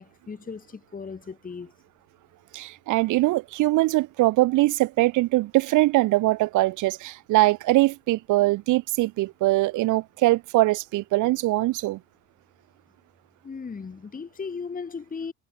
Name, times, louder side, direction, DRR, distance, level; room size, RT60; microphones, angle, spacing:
voice 1, 0.0-1.7 13.4-15.3, left 5 dB, 30° left, 1.3 m, -36 dB
voice 2, 2.5-12.0, right 18 dB, 80° right, 0.5 m, -22 dB
cardioid pair, 90°, 30 cm